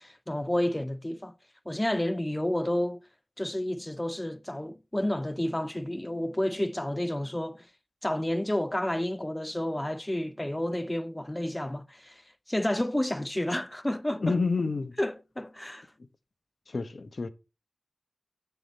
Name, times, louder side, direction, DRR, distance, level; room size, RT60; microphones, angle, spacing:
voice 1, 0.0-1.3 1.7-3.0 3.4-7.7 8.0-12.2 12.5-14.4 15.0-15.9, left 1 dB, 15° left, 0.6 m, -30 dB
voice 2, 14.2-15.0 16.7-17.3, left 4 dB, 70° left, 0.9 m, -29 dB
7.3 x 7.1 x 4.0 m
wide cardioid pair, 60°, 0 cm